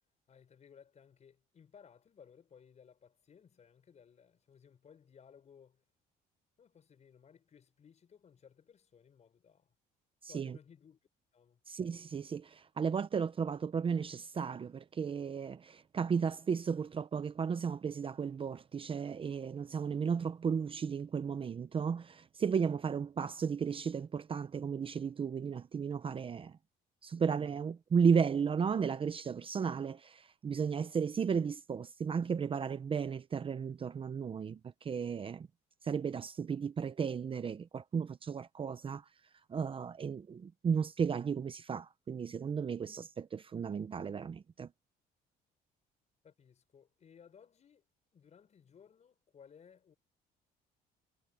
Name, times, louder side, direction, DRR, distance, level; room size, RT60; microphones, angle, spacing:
voice 1, 0.3-5.8 6.6-9.7 10.3-11.0 11.3-11.6 46.2-47.8 48.1-50.0, left 7 dB, 40° left, 6.1 m, -60 dB
voice 2, 10.2-10.5 11.7-26.6 27.0-35.5 35.8-39.0 39.5-44.7, right 6 dB, 30° right, 0.8 m, -34 dB
cardioid pair, 110°, 17 cm